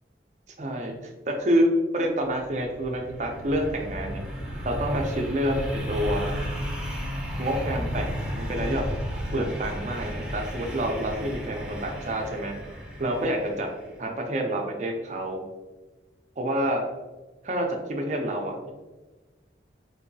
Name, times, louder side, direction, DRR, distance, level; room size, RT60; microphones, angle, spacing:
voice 1, 0.6-4.2 4.6-6.3 7.4-8.9 9.3-12.5 13.0-13.7 14.0-15.4 16.4-16.8 17.4-18.7, equal, 40° right, 2 dB, 0.5 m, -28 dB
sound 1, 2.3-13.9, equal, 5° right, 0.7 m, -33 dB
3.9 x 2.7 x 2.6 m, 1.2 s
head